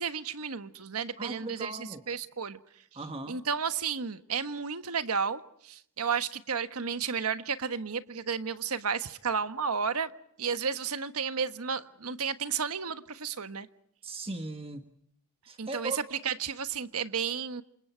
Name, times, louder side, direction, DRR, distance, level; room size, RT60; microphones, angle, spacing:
voice 1, 0.0-1.8 2.1-2.6 3.3-10.1 10.4-13.7 15.6-17.6, right 6 dB, 80° right, 1.3 m, -32 dB
voice 2, 1.2-2.0 2.9-3.4 14.0-14.8 15.4-16.0, right 2 dB, 25° right, 1.5 m, -38 dB
28.5 x 27.5 x 4.6 m
head